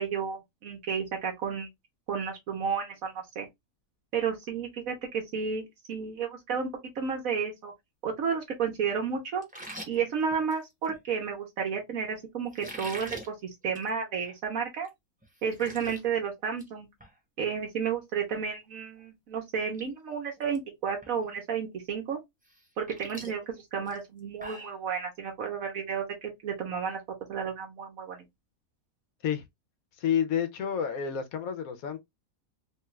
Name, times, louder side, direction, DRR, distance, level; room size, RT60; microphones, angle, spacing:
voice 1, 0.0-1.7 2.1-3.5 4.1-7.7 8.0-9.4 9.9-13.3 13.6-14.9 15.4-16.9 17.4-22.2 22.8-23.4 23.7-27.0 27.3-28.2, right 6 dB, 75° right, 1.3 m, -32 dB
sound 1, 9.4-11.0 12.5-13.3 13.7-13.9 14.2-14.3 14.8-14.9 15.2-16.0 16.4-16.7 17.0-17.1 19.0-19.1 19.5-19.8 20.1-20.6 21.0-21.1 22.5-24.8, right 1 dB, 5° right, 0.8 m, -44 dB
voice 2, 30.0-32.0, left 8 dB, 80° left, 1.1 m, -29 dB
3.1 x 2.3 x 3.0 m
omnidirectional pair, 1.5 m